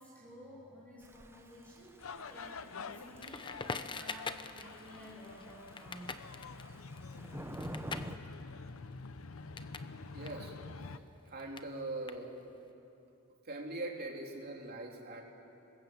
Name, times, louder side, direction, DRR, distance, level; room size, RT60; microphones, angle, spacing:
voice 1, 0.0-2.0 2.3-3.6 3.9-6.2, equal, 5° left, -5 dB, 6.6 m, -53 dB
Thunder / Rain, 1.0-8.2, right 1 dB, 10° right, 0.7 m, -50 dB
sound 1, 2.0-11.0, left 4 dB, 70° left, 0.8 m, -47 dB
Crackle, 3.2-9.9 10.2-12.6, left 4 dB, 25° left, 0.8 m, -45 dB
voice 2, 10.1-10.5 10.9-12.3 13.4-15.2, right 2 dB, 45° right, 0 dB, 3.3 m, -42 dB
26.0 x 21.0 x 8.1 m, 2.8 s
head